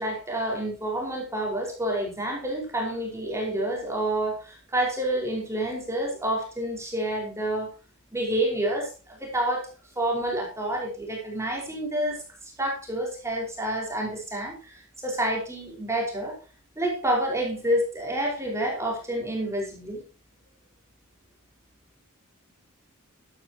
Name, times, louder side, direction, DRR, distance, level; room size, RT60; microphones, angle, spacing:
voice 1, 0.0-7.7 8.1-16.4 16.8-20.0, right 1 dB, 15° right, -1 dB, 5.0 m, -29 dB
13.5 x 13.0 x 3.0 m, 0.34 s
head